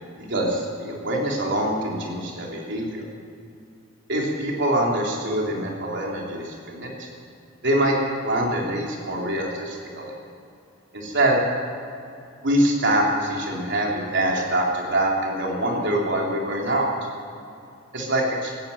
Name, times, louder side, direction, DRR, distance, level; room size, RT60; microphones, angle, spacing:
voice 1, 0.2-3.1 4.1-7.1 7.6-8.0 8.2-10.1 10.9-11.4 12.4-16.9 17.9-18.5, right 1 dB, 65° right, -2 dB, 3.7 m, -24 dB
17.5 x 14.0 x 5.8 m, 2.6 s
head